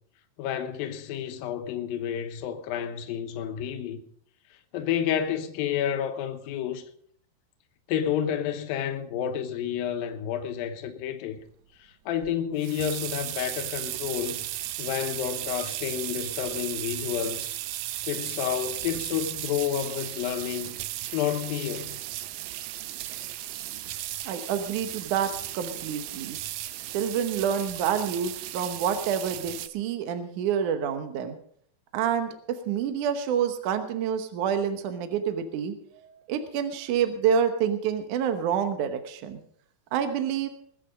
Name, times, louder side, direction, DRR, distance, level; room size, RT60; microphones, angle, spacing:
voice 1, 0.4-4.0 4.7-6.9 7.9-11.4 12.1-14.5 14.8-17.6 18.0-20.8 21.1-22.0, left 9 dB, 70° left, 2.6 m, -30 dB
sound 1, 12.2-29.7, right 14 dB, 85° right, 1.9 m, -35 dB
voice 2, 24.3-26.4 26.9-31.4 31.9-35.7 36.0-39.4 39.9-40.5, right 8 dB, 70° right, 2.0 m, -28 dB
21.0 x 8.5 x 5.1 m
omnidirectional pair, 4.8 m